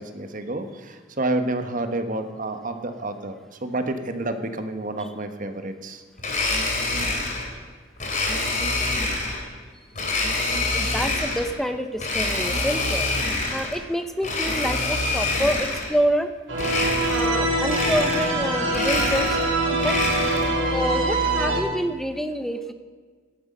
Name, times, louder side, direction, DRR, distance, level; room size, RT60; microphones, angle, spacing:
voice 1, 0.0-3.3 3.6-6.0, right 2 dB, 45° right, 8 dB, 1.3 m, -29 dB
Domestic sounds home sounds, 6.2-7.5 8.0-9.4 9.9-11.5 12.0-13.8 14.2-16.0 16.5-17.4 17.7-18.4 18.7-20.6, left 2 dB, 40° left, 3.1 m, -26 dB
voice 2, 10.7-13.1 13.5-16.3 17.1-19.4 19.7-20.0 20.7-22.7, equal, ahead, 8 dB, 0.8 m, -27 dB
sound 1, 16.5-21.6, right 2 dB, 80° right, 3.9 m, -24 dB
17.0 x 12.5 x 5.4 m, 1.5 s
head